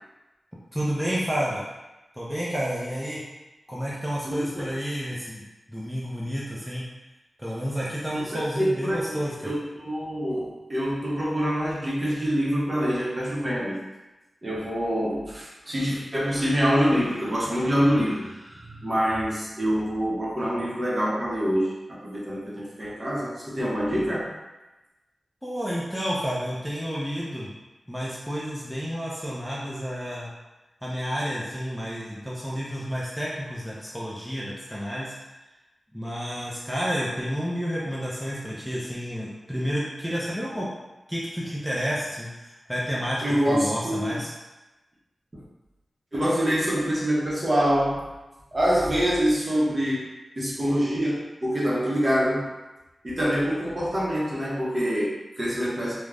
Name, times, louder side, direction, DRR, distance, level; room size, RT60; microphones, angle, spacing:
voice 1, 0.7-1.6 2.1-3.2 3.7-5.4 5.7-6.9 7.4-9.5 25.4-27.5 27.9-30.3 30.8-35.2 35.9-40.7 41.1-44.3, equal, ahead, -6 dB, 0.5 m, -30 dB
voice 2, 4.2-4.7 8.1-13.8 14.4-24.3 43.2-44.2 45.3-45.4 46.1-48.1 48.5-50.1 50.4-52.5 53.0-56.0, equal, 30° right, -5 dB, 0.7 m, -25 dB
2.4 x 2.0 x 3.3 m, 1.1 s
wide cardioid pair, 85°, 0 cm